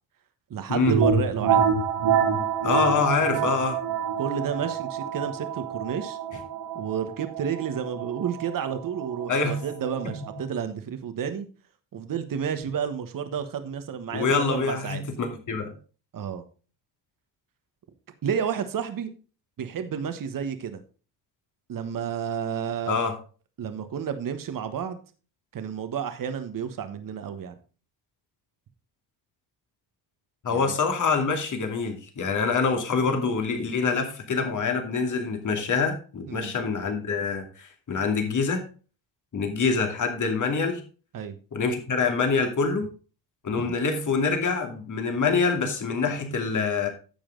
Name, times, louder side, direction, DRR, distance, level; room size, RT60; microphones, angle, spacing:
voice 1, 0.5-1.6 4.2-6.2 6.7-11.5 11.9-15.0 16.1-16.4 18.2-19.1 19.6-20.8 21.7-23.0 23.6-25.0 25.5-27.5 30.5-30.7 36.3-36.5 41.1-41.4 43.6-43.7, right 7 dB, 50° right, 9 dB, 1.3 m, -31 dB
sound 1, 0.9-10.4, right 7 dB, 70° right, 2.6 m, -27 dB
voice 2, 2.6-3.8 9.3-9.6 10.0-10.1 14.1-15.7 22.9-23.1 30.4-38.6 39.3-40.8 41.5-42.9 43.4-46.9, left 4 dB, 45° left, 4 dB, 2.5 m, -25 dB
10.5 x 7.0 x 3.9 m, 0.36 s
cardioid pair, 90°, 43 cm